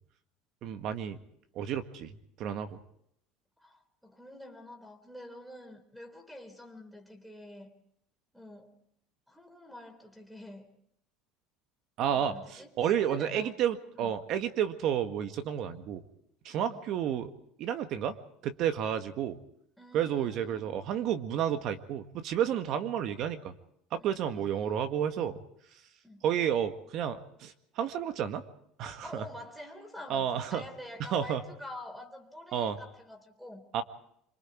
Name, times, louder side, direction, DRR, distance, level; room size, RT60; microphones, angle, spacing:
voice 1, 0.6-1.2 1.6-2.1 2.4-2.8 12.0-16.0 16.5-17.3 17.6-18.2 18.4-19.4 19.9-23.5 23.9-25.4 26.2-28.4 28.8-29.2 30.1-30.7 31.0-31.4 32.5-32.8 33.7-33.8, right 9 dB, 50° right, 9 dB, 1.8 m, -31 dB
voice 2, 3.6-7.7 8.3-8.8 9.3-10.7 12.1-13.6 13.9-14.1 16.6-16.8 19.8-20.8 24.0-24.9 26.0-26.2 29.0-33.7, left 1 dB, ahead, 8 dB, 3.4 m, -47 dB
26.0 x 23.5 x 4.7 m, 0.73 s
cardioid pair, 145°, 0 cm